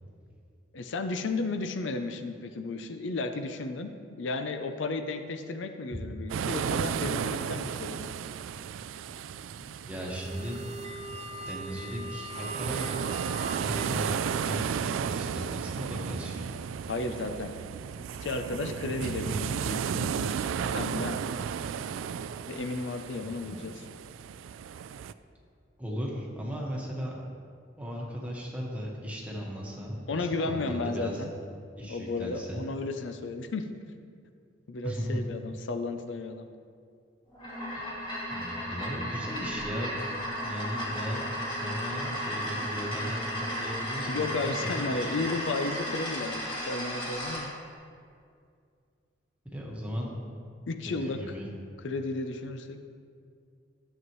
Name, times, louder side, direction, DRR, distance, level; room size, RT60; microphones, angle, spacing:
voice 1, 0.7-3.9 4.2-8.1 16.9-17.6 18.2-20.4 20.6-21.2 22.5-23.7 30.1-31.3 31.8-33.7 34.7-36.5 44.0-47.5 50.7-51.2 51.8-52.8, left 3 dB, 70° left, 8 dB, 0.5 m, -33 dB
sound 1, 6.3-25.1, right 7 dB, 90° right, 0.3 m, -34 dB
voice 2, 9.9-10.6 11.5-12.8 13.4-16.5 25.8-27.1 27.8-31.2 31.8-32.6 34.8-35.2 38.3-40.0 40.4-45.1 49.5-50.1 50.8-51.5, equal, 5° right, -3 dB, 1.4 m, -37 dB
sound 2, 9.9-14.8, equal, 35° right, 0.6 m, -41 dB
sound 3, 37.3-47.4, equal, 25° left, 2.5 m, -34 dB
12.5 x 7.7 x 3.1 m, 2.3 s
head